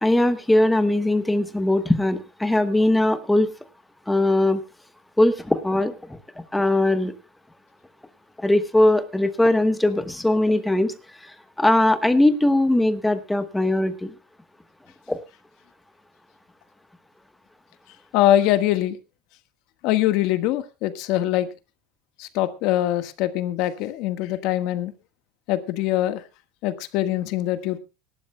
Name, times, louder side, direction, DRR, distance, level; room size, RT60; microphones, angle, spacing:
voice 1, 0.0-3.5 4.1-4.6 5.2-6.2 6.5-7.1 8.4-10.9 11.2-14.1 15.1-15.2, left 1 dB, 5° left, 10 dB, 1.1 m, -20 dB
voice 2, 18.1-19.0 19.8-21.5 22.2-24.9 25.5-26.2 26.6-27.8, left 13 dB, 55° left, 11 dB, 1.4 m, -23 dB
25.0 x 12.0 x 2.2 m, 0.27 s
cardioid pair, 165°, 0 cm